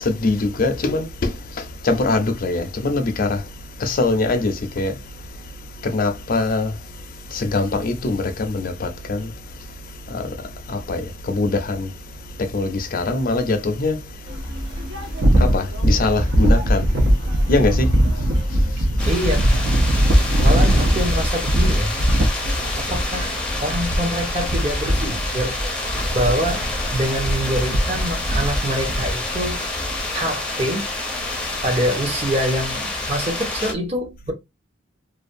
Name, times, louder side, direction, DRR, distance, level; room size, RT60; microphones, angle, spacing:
voice 1, 0.0-19.1 20.1-20.5 22.2-22.9 26.0-26.2 30.0-30.2 31.2-31.6, left 3 dB, 45° left, 0.5 m, -24 dB
sound 1, 14.3-30.0, equal, 65° right, 0.6 m, -21 dB
sound 2, 19.0-33.7, left 2 dB, 5° left, 0.6 m, -28 dB
voice 2, 19.0-19.6 20.4-21.9 22.7-25.6 26.1-26.6 26.9-29.6 30.1-30.9 31.6-34.3, equal, 35° right, 0.9 m, -25 dB
2.5 x 2.2 x 2.5 m
head